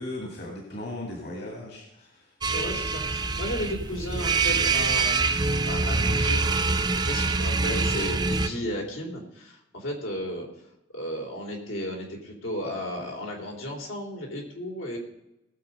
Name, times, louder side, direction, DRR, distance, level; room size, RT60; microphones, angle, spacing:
voice 1, 0.0-2.3, left 1 dB, 50° left, 0 dB, 2.1 m, -37 dB
sound 1, 2.4-8.5, right 4 dB, 20° right, 0.6 m, -25 dB
voice 2, 2.5-10.5 10.9-15.0, left 1 dB, 80° left, 0 dB, 3.4 m, -34 dB
18.0 x 7.1 x 5.4 m, 0.91 s
head